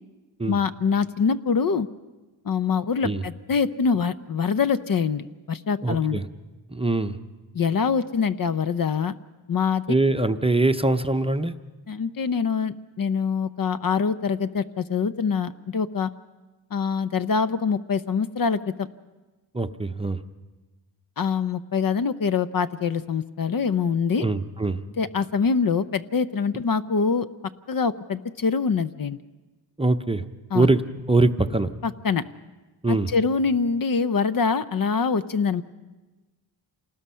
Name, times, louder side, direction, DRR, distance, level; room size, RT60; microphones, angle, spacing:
voice 1, 0.5-1.9 2.4-6.2 7.5-9.2 9.5-9.8 11.9-16.1 16.7-18.9 21.2-24.3 25.0-27.3 27.7-29.2 30.5-30.7 32.0-32.2 33.1-35.6, left 5 dB, 50° left, 12 dB, 0.6 m, -24 dB
voice 2, 5.8-6.3 6.7-7.2 9.9-11.5 19.5-20.2 24.2-24.8 29.8-30.2 30.5-30.8 31.1-31.7 32.8-33.1, right 2 dB, 10° right, 7 dB, 0.7 m, -22 dB
27.5 x 19.5 x 5.6 m, 1.2 s
wide cardioid pair, 95°, 46 cm